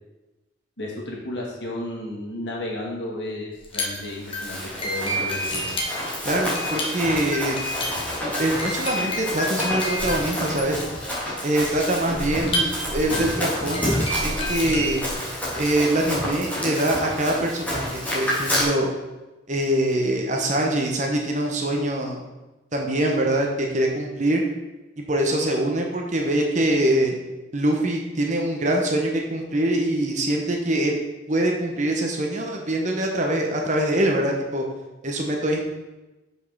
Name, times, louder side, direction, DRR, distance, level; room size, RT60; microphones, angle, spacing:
voice 1, 0.8-5.8, left 1 dB, 65° left, -3 dB, 2.4 m, -33 dB
sound 1, 3.6-15.1, left 1 dB, 30° left, 1.5 m, -30 dB
Run, 4.1-18.6, left 1 dB, 10° left, 2.3 m, -29 dB
voice 2, 6.2-7.6 8.4-10.8 11.4-15.0 15.6-18.9 19.5-22.2 22.7-24.4 25.0-27.1 27.5-30.9 31.3-34.6 35.0-35.6, right 1 dB, 40° right, 1 dB, 1.1 m, -24 dB
6.3 x 5.5 x 6.2 m, 1.1 s
head